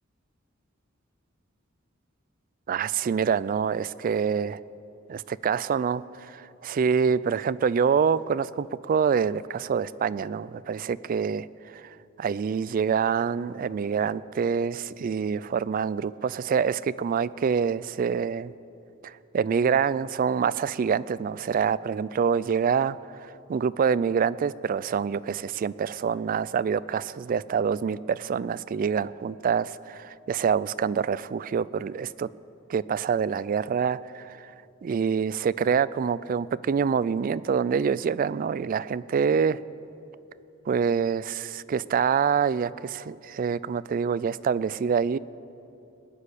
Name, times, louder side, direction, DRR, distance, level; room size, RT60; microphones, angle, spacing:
voice 1, 2.7-4.6 5.1-18.5 19.0-23.0 23.2-32.3 32.7-34.5 34.8-39.6 40.7-45.2, right 6 dB, 45° right, 18 dB, 0.3 m, -26 dB
20.0 x 6.6 x 9.9 m, 2.8 s
head